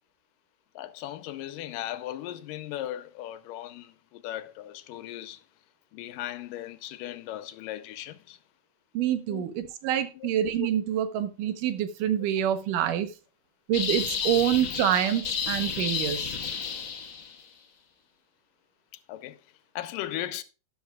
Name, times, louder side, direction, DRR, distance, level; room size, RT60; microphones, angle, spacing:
voice 1, 0.8-5.4 5.9-8.4 9.3-9.5 10.1-10.7 18.9-19.5 19.8-20.4, left 13 dB, 85° left, 2.4 m, -37 dB
voice 2, 8.9-13.1 13.7-16.3, right 10 dB, 80° right, 2.6 m, -26 dB
sound 1, 13.7-17.4, left 6 dB, 45° left, 1.8 m, -31 dB
13.0 x 10.0 x 2.4 m
omnidirectional pair, 3.8 m